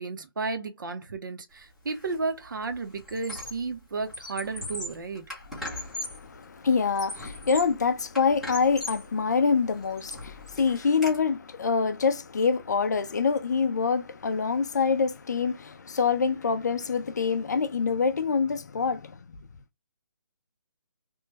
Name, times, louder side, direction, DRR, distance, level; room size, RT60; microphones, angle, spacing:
voice 1, 0.0-5.2, right 4 dB, 60° right, 0.7 m, -33 dB
Squeak, 1.9-2.2 2.5-3.7 4.0-6.3 6.8-7.8 8.2-9.1 9.6-11.2, left 1 dB, ahead, 0.7 m, -39 dB
voice 2, 5.6-19.2, left 5 dB, 50° left, 0.4 m, -26 dB
3.0 x 2.2 x 3.2 m
hypercardioid pair, 170°, 12 cm